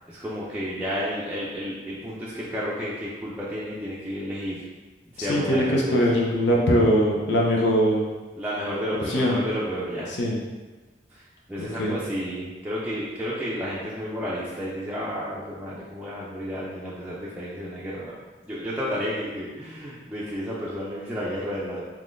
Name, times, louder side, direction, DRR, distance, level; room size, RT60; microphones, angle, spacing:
voice 1, 0.1-4.6 5.1-6.0 8.4-10.1 11.1-11.2 11.5-18.1 18.4-21.9, equal, 10° right, -8 dB, 0.4 m, -31 dB
voice 2, 5.2-8.1 9.1-9.4 10.2-10.4 11.6-11.9, equal, 85° left, -2 dB, 0.6 m, -21 dB
3.6 x 3.1 x 2.5 m, 1.3 s
head